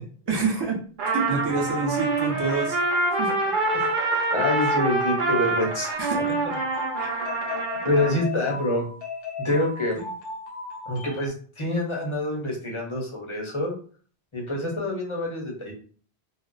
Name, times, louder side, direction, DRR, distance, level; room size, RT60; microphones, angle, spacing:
voice 1, 0.3-0.8 1.1-2.8 3.2-3.3 3.8-3.9 6.0-6.2, right 4 dB, 30° right, -1 dB, 0.5 m, -26 dB
Trumpet, 1.0-8.2, right 2 dB, 55° right, 0.8 m, -26 dB
voice 2, 4.3-6.0 7.0-7.1 7.8-8.9 9.4-10.0 10.9-13.7 14.3-15.7, left 1 dB, 35° left, -1 dB, 0.6 m, -26 dB
sound 1, 5.9-11.3, left 3 dB, 70° left, 0.8 m, -36 dB
2.3 x 2.1 x 3.7 m, 0.43 s
omnidirectional pair, 1.1 m